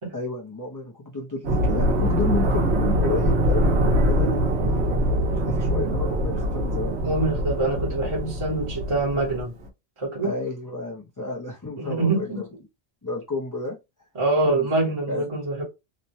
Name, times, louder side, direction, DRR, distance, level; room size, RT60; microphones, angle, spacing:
voice 1, 0.1-4.3 4.7-4.8 5.3-7.0 10.2-12.4 13.0-13.8 14.4-14.7 15.1-15.3, left 3 dB, 25° left, 0.5 m, -31 dB
sound 1, 1.4-9.7, equal, 90° right, 1.1 m, -23 dB
voice 2, 7.0-9.5 10.0-10.3 11.8-12.4 14.1-15.6, right 2 dB, 30° right, 0.9 m, -25 dB
3.0 x 2.1 x 2.5 m
omnidirectional pair, 1.1 m